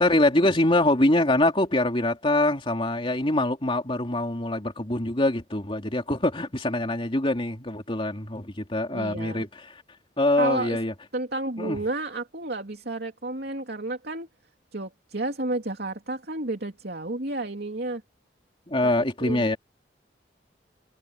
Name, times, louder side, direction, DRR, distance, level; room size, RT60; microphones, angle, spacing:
voice 1, 0.0-9.6 10.2-10.9 11.6-11.8 18.7-19.6, left 1 dB, 30° left, 3.2 m, -24 dB
voice 2, 8.9-9.4 10.4-10.8 11.1-14.3 14.7-18.0 18.8-18.9 19.2-19.6, right 2 dB, 60° right, 3.0 m, -31 dB
head